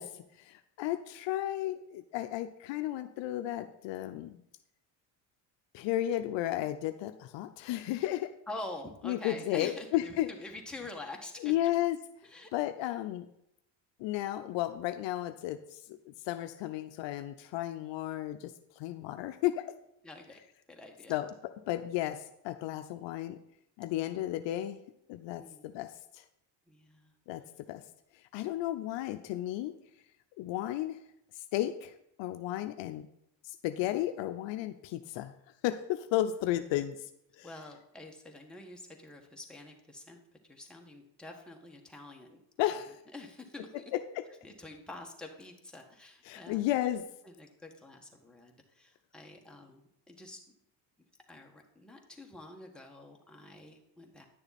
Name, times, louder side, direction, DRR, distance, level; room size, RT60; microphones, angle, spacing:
voice 1, 0.0-4.4 5.7-8.3 9.0-10.3 11.4-12.0 12.5-13.2 14.0-19.7 21.1-21.3 21.7-23.4 23.8-24.8 25.1-26.2 27.3-27.4 27.7-27.8 28.3-29.7 30.4-31.0 31.5-31.9 32.2-33.1 33.4-35.3 35.6-37.0 37.4-37.5 42.6-42.9 43.9-44.2 46.3-47.0, left 13 dB, 70° left, 9 dB, 0.7 m, -33 dB
voice 2, 8.5-11.5 12.2-12.5 20.0-20.4 20.7-21.2 25.4-25.8 26.7-27.1 37.4-42.4 42.7-42.8 43.1-43.8 44.4-46.7 47.2-50.4 51.3-54.3, left 2 dB, ahead, 0 dB, 1.5 m, -47 dB
10.0 x 6.8 x 4.2 m, 0.79 s
supercardioid pair, 95°, 46 cm